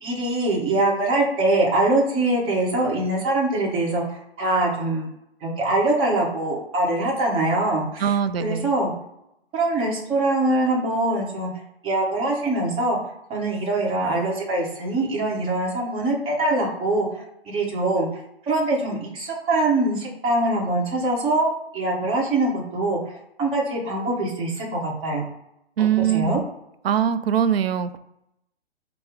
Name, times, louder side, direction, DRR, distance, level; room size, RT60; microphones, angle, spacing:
voice 1, 0.0-5.1 5.4-8.1 8.4-8.9 9.5-11.5 11.8-13.0 13.3-18.1 18.5-23.1 23.4-25.2 26.0-26.4, right 2 dB, 15° right, -3 dB, 0.9 m, -23 dB
voice 2, 8.0-8.7 25.8-26.5 26.8-28.0, right 9 dB, 65° right, 11 dB, 0.4 m, -22 dB
4.5 x 2.0 x 3.5 m, 0.81 s
hypercardioid pair, 140°, 33 cm